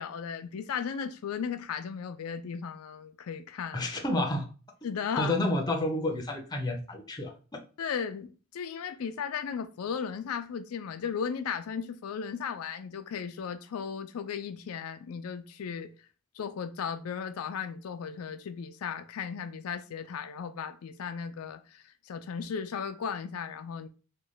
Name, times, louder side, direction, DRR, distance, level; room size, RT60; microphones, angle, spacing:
voice 1, 0.0-3.9 4.8-5.3 7.8-16.1 16.3-23.9, left 6 dB, 90° left, 0.4 m, -36 dB
voice 2, 3.7-4.5 5.2-7.6, left 1 dB, 20° left, 0.5 m, -30 dB
3.1 x 2.2 x 3.8 m
head